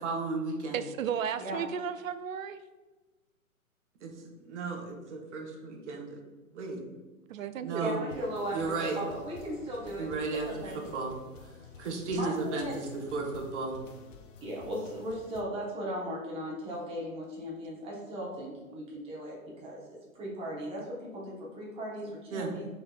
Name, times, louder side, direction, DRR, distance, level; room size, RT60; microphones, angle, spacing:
voice 1, 0.0-0.8 4.0-6.2 6.5-6.8 7.6-8.1 8.5-9.0 10.0-11.1 11.8-13.8 22.3-22.5, right 3 dB, 55° right, 1 dB, 1.0 m, -34 dB
voice 2, 0.7-2.6 7.3-7.9, right 8 dB, 70° right, 12 dB, 0.5 m, -34 dB
voice 3, 7.8-10.8 12.1-12.8 14.4-22.7, equal, 15° right, -4 dB, 0.9 m, -37 dB
sound 1, 8.1-15.4, left 5 dB, 60° left, 0.6 m, -51 dB
4.9 x 4.0 x 2.3 m, 1.2 s
hypercardioid pair, 125°, 43 cm